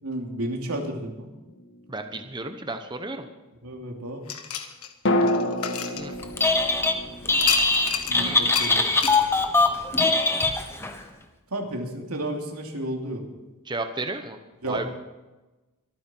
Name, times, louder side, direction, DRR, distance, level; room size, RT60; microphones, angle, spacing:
voice 1, 0.0-1.3 3.6-4.2 8.1-8.9 11.5-13.2 14.6-14.9, right 1 dB, 90° right, 1 dB, 2.9 m, -32 dB
sound 1, 1.5-2.6 5.0-9.0 9.3-9.4, left 1 dB, 55° left, 1.8 m, -29 dB
voice 2, 1.9-3.3 6.0-6.2 8.2-8.5 13.7-14.4 14.7-14.8, right 2 dB, 20° right, 7 dB, 0.9 m, -33 dB
sound 2, 4.3-6.7 7.4-8.2 8.5-8.7 9.0-9.2, left 8 dB, 80° left, 1.5 m, -29 dB
Telephone, 6.2-7.0 7.3-11.0, left 3 dB, 10° left, 1.3 m, -22 dB
24.0 x 9.5 x 4.5 m, 1.1 s
head